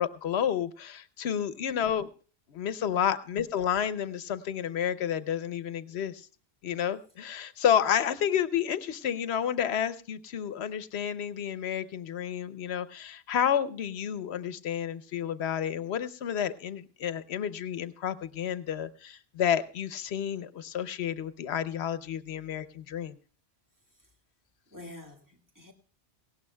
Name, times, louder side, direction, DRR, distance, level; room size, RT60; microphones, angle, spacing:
voice 1, 0.0-2.1 2.5-6.3 6.6-23.2, left 9 dB, 80° left, 1.0 m, -30 dB
voice 2, 24.7-25.7, left 1 dB, 20° right, 1.8 m, -47 dB
18.0 x 17.0 x 2.2 m
omnidirectional pair, 1.1 m